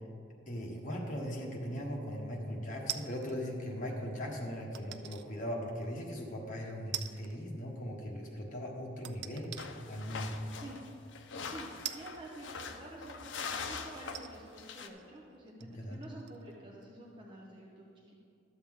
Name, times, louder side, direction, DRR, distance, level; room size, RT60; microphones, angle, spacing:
voice 1, 0.5-9.6 9.9-10.3 15.7-16.0, equal, 40° left, -2 dB, 1.3 m, -39 dB
sound 1, 2.9-3.4 4.7-5.3 5.8-5.9 6.9-7.4 7.7-7.8 9.0-9.7 10.5-10.6 11.8-12.9 13.6-13.7 14.1-16.5 16.8-16.9, right 11 dB, 60° right, 0.3 m, -43 dB
sound 2, 9.6-14.9, left 5 dB, 70° left, 0.6 m, -43 dB
voice 2, 11.4-18.2, right 1 dB, 25° right, -4 dB, 0.8 m, -49 dB
12.0 x 7.0 x 3.6 m, 2.5 s
head